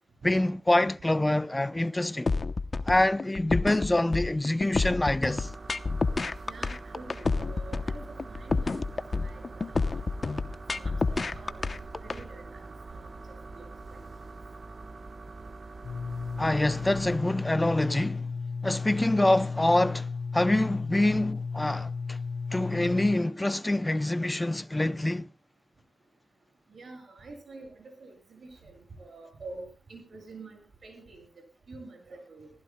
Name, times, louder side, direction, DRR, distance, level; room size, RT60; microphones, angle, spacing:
voice 1, 0.2-2.3 2.9-5.5 16.4-18.3 18.6-22.2 22.5-25.3, left 1 dB, 15° left, 0.6 m, -26 dB
sound 1, 2.3-12.2, left 3 dB, 40° left, 0.8 m, -29 dB
sound 2, 5.2-17.2, right 3 dB, 50° right, 1.3 m, -44 dB
voice 2, 6.4-8.0 8.3-8.8 9.2-9.4 9.9-10.0 10.7-11.6 12.0-13.2 13.5-13.6 13.9-14.0 26.7-31.3 31.7-32.5, right 3 dB, 65° right, 7.5 m, -47 dB
sound 3, 15.8-23.2, left 4 dB, 70° left, 2.5 m, -34 dB
26.0 x 15.5 x 2.3 m
wide cardioid pair, 90°, 0 cm